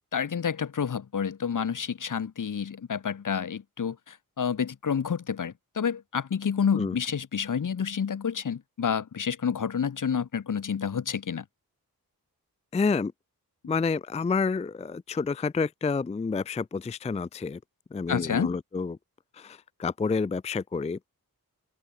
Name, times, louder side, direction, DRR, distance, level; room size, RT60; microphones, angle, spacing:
voice 1, 0.1-11.4 18.1-18.6, left 7 dB, 60° left, 1.0 m, -29 dB
voice 2, 12.7-13.1 13.7-17.6 17.9-19.0 19.4-21.0, left 4 dB, 20° left, 0.4 m, -29 dB
open air
wide cardioid pair, 95°, 36 cm